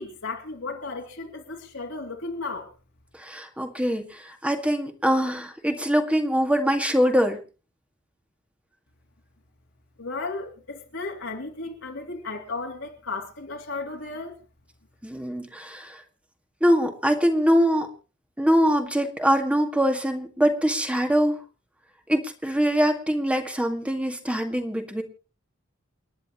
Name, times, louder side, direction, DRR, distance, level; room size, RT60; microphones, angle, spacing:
voice 1, 0.0-2.7 10.0-14.4, left 3 dB, 80° left, -2 dB, 3.0 m, -34 dB
voice 2, 3.2-7.4 15.0-16.0 16.6-17.9 18.4-21.4 22.1-25.0, equal, 5° right, 4 dB, 1.9 m, -23 dB
29.0 x 10.5 x 3.0 m, 0.34 s
head